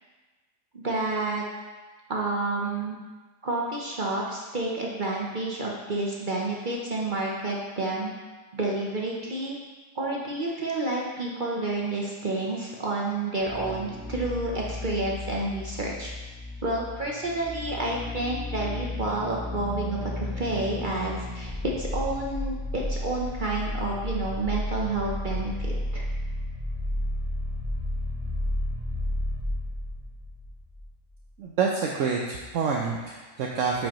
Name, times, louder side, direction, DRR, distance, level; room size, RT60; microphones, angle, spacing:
voice 1, 0.7-1.4 2.1-3.0 3.4-8.1 8.5-9.6 9.9-16.1 16.6-25.5 25.9-26.0, right 2 dB, 45° right, -2 dB, 0.8 m, -29 dB
sound 1, 13.4-30.9 31.2-31.3, left 1 dB, 15° right, 0.9 m, -33 dB
voice 2, 31.4-33.9, right 5 dB, 65° right, -1 dB, 0.9 m, -27 dB
8.7 x 5.2 x 3.0 m, 1.3 s
omnidirectional pair, 1.5 m